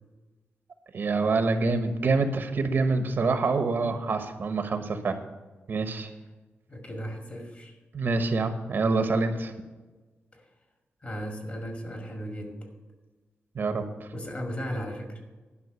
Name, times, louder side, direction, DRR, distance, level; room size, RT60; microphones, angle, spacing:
voice 1, 0.9-5.1 5.7-6.1 7.9-9.5 13.5-14.1, right 3 dB, 55° right, 8 dB, 1.1 m, -26 dB
voice 2, 6.7-7.8 10.3-10.5 11.0-12.7 14.1-15.2, equal, 35° left, 3 dB, 2.0 m, -36 dB
11.0 x 5.8 x 8.1 m, 1.2 s
wide cardioid pair, 135°, 4 cm